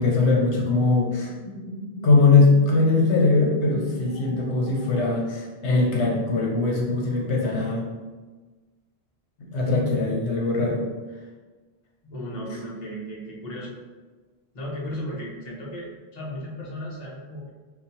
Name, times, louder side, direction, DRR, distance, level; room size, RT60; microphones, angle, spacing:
voice 1, 0.0-1.3 2.0-7.9 9.4-10.8, left 3 dB, 85° left, -1 dB, 1.0 m, -21 dB
sound 1, 1.4-5.6, equal, 65° left, 1.1 m, -37 dB
voice 2, 12.0-13.8 14.5-17.5, equal, 40° left, -4 dB, 0.9 m, -35 dB
5.7 x 2.2 x 2.7 m, 1.3 s
omnidirectional pair, 1.1 m